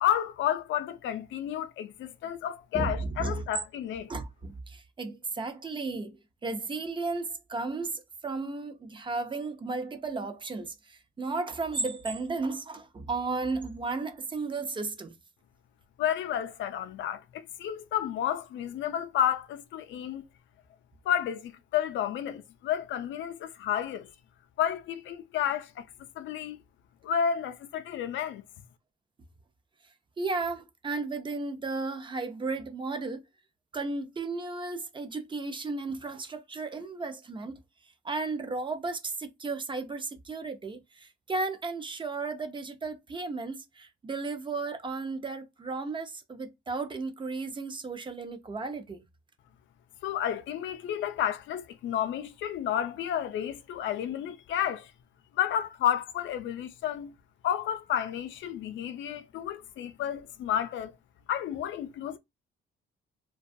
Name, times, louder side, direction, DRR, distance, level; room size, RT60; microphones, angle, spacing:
voice 1, 0.0-4.1 16.0-20.2 21.1-24.1 24.6-25.9 26.2-26.6 27.0-28.4 50.0-54.9 55.3-57.1 57.4-61.0 61.3-62.2, left 10 dB, 70° left, 0.4 m, -31 dB
voice 2, 2.7-3.4 4.1-15.2 30.2-33.2 33.7-37.6 38.0-49.0, right 3 dB, 25° right, 0.4 m, -34 dB
2.3 x 2.2 x 2.5 m
cardioid pair, 90°, 20 cm